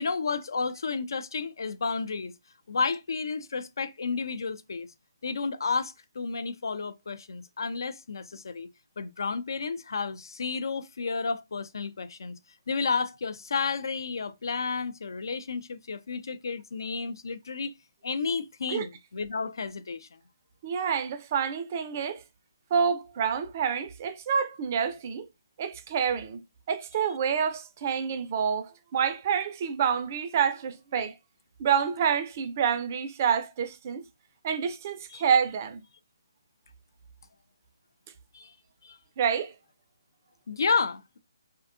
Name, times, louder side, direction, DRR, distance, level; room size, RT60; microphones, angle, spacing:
voice 1, 0.0-2.3 2.7-4.9 5.2-8.7 9.0-12.4 12.7-17.7 18.0-20.1 35.1-35.2 38.3-38.5 38.8-39.0 40.5-41.2, left 4 dB, 70° left, 0.3 m, -31 dB
voice 2, 20.6-22.2 22.7-25.3 25.6-26.4 26.7-31.2 31.6-34.0 34.4-35.8 39.2-39.5, right 7 dB, 35° right, 0.3 m, -28 dB
2.6 x 2.2 x 2.4 m
hypercardioid pair, 150°, 2 cm